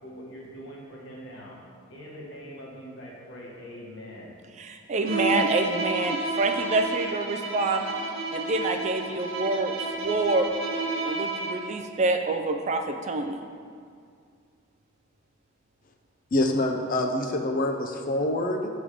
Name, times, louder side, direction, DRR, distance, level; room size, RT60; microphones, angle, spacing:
voice 1, 0.0-1.6 1.9-4.3, equal, 60° left, -3 dB, 1.3 m, -42 dB
voice 2, 4.6-7.9 8.3-10.5 11.0-13.4, right 3 dB, 35° right, 5 dB, 0.3 m, -27 dB
Bowed string instrument, 5.0-11.7, right 2 dB, 80° right, 0.9 m, -31 dB
voice 3, 16.3-18.7, left 1 dB, 40° left, 4 dB, 0.4 m, -26 dB
7.0 x 3.5 x 4.9 m, 2.2 s
head